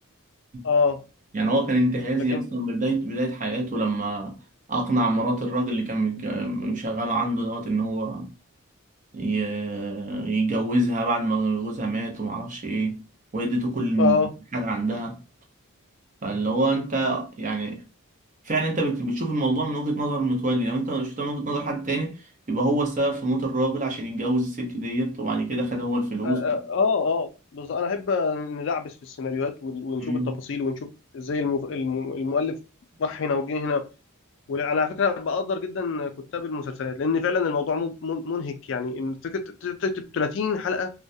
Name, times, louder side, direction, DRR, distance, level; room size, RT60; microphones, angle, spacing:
voice 1, 0.6-1.0 2.3-2.4 14.0-14.3 26.2-30.9 31.1-32.6 33.0-33.9 34.5-40.9, left 5 dB, 55° left, 0.3 m, -26 dB
voice 2, 1.3-4.4 4.7-8.3 9.1-13.0 13.3-14.2 14.5-15.2 16.2-17.8 18.4-26.4 30.0-30.4, right 2 dB, 35° right, 0.6 m, -26 dB
2.3 x 2.1 x 2.6 m
head